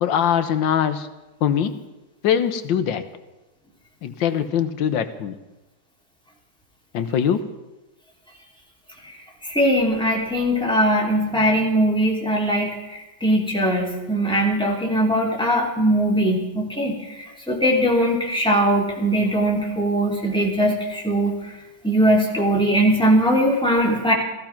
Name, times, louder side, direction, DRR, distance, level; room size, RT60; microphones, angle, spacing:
voice 1, 0.0-1.1 1.4-1.8 2.2-3.0 4.0-5.3 6.9-7.5, left 8 dB, 70° left, 10 dB, 1.6 m, -22 dB
voice 2, 9.4-12.7 13.2-17.0 17.5-21.3 21.8-24.1, right 1 dB, ahead, -3 dB, 3.0 m, -20 dB
15.5 x 15.5 x 5.9 m, 1.1 s
omnidirectional pair, 2.2 m